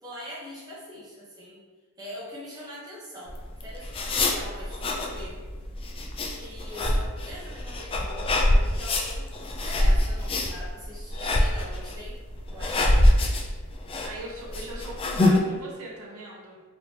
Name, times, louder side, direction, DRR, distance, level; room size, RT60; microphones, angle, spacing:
voice 1, 0.0-1.6 2.0-5.4 6.3-12.2 12.5-13.0, equal, 20° right, -8 dB, 0.7 m, -42 dB
sound 1, 3.3-15.4, left 1 dB, 25° left, 0.3 m, -25 dB
voice 2, 14.0-16.6, right 1 dB, 90° right, -3 dB, 0.7 m, -40 dB
3.2 x 2.8 x 2.8 m, 1.4 s
head